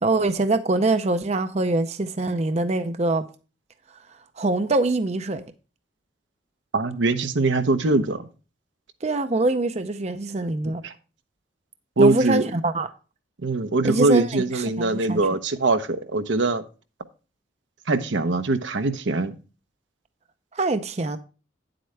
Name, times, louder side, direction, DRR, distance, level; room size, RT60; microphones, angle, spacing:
voice 1, 0.0-3.3 4.1-5.4 9.0-10.8 12.0-12.9 13.8-15.3 20.5-21.2, right 2 dB, 35° right, 0.5 m, -24 dB
voice 2, 6.7-8.3 10.8-10.9 12.0-12.4 13.4-16.6 17.9-19.3, right 2 dB, 80° right, 0.9 m, -22 dB
9.7 x 7.8 x 3.3 m
head